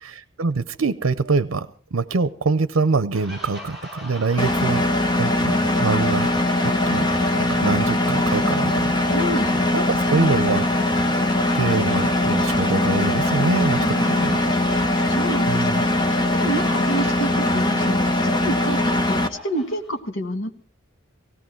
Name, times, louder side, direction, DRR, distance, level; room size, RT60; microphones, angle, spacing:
voice 1, 0.0-6.3 6.6-7.1 7.3-9.0 9.7-10.7 11.5-14.4 15.5-15.8, right 3 dB, 80° right, 14 dB, 0.7 m, -24 dB
sound 1, 3.1-20.0, left 1 dB, ahead, 7.2 m, -42 dB
voice 2, 4.3-4.6 9.1-9.6 13.8-14.5 14.8-18.1 18.4-20.6, right 1 dB, 75° left, 5 dB, 1.8 m, -29 dB
Engine, 4.4-19.3, left 1 dB, 20° left, 1.2 m, -21 dB
18.0 x 17.0 x 4.6 m, 0.43 s
head